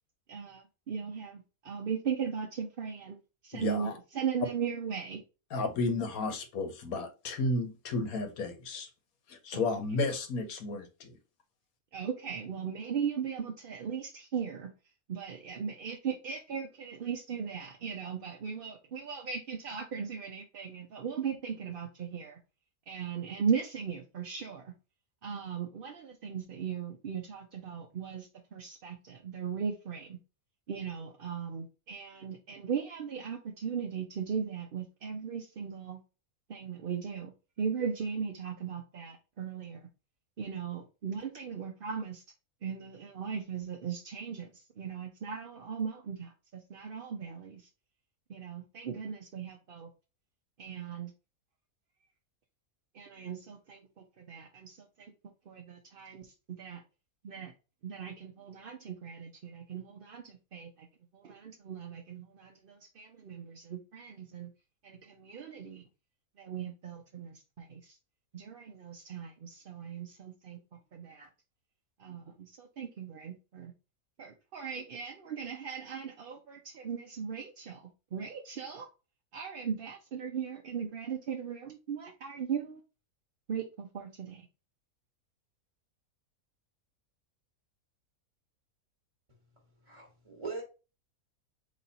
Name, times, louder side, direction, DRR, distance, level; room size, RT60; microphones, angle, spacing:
voice 1, 0.3-3.2 3.4-5.2 9.5-9.6 11.9-14.7 15.1-22.4 22.9-24.7 25.2-30.2 30.7-36.0 36.5-39.8 40.4-42.2 42.6-47.6 48.3-49.9 50.6-51.1 52.9-55.1 55.5-56.8 57.2-57.5 57.8-60.9 61.1-64.5 64.8-65.8 66.4-68.0 68.3-70.6 70.9-71.3 72.0-73.7 74.2-77.8 78.1-78.9 79.3-82.8 83.5-84.5, right 7 dB, 50° right, 0.7 m, -38 dB
voice 2, 3.5-4.0 5.5-8.9 9.3-11.2, left 3 dB, 75° left, 1.3 m, -33 dB
voice 3, 89.3-90.6, right 4 dB, 25° right, 1.3 m, -43 dB
4.1 x 3.1 x 4.1 m
omnidirectional pair, 1.6 m